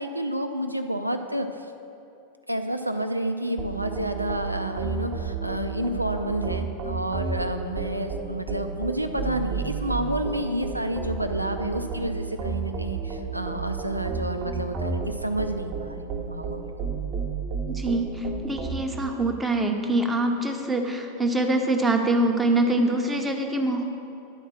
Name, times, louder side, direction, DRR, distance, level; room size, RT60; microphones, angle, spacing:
voice 1, 0.0-1.7 2.5-16.7, right 1 dB, 90° right, 7 dB, 0.5 m, -30 dB
sound 1, 3.6-18.8, right 5 dB, 40° right, 1.0 m, -32 dB
voice 2, 17.7-23.8, right 2 dB, 10° right, 2 dB, 0.8 m, -24 dB
10.5 x 4.3 x 6.2 m, 2.7 s
figure-of-eight pair, 90°, 0 cm